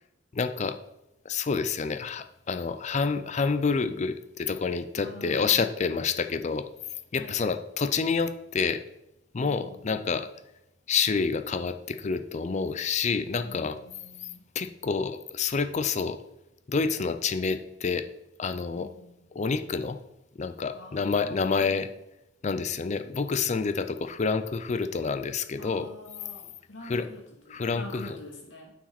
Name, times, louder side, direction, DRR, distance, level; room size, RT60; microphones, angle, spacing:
voice 1, 0.3-0.8 1.3-6.7 7.1-8.8 9.3-10.3 10.9-13.8 14.5-16.2 16.7-18.1 18.4-18.9 19.4-20.0 20.4-21.9 22.4-25.9 26.8-27.1 27.5-28.1, left 5 dB, 40° left, 10 dB, 0.5 m, -28 dB
voice 2, 5.0-5.9 7.1-7.4 9.4-10.3 13.4-14.4 18.8-19.2 20.7-21.9 25.6-28.7, left 1 dB, 80° left, 0 dB, 2.1 m, -46 dB
8.8 x 4.9 x 4.3 m, 0.88 s
head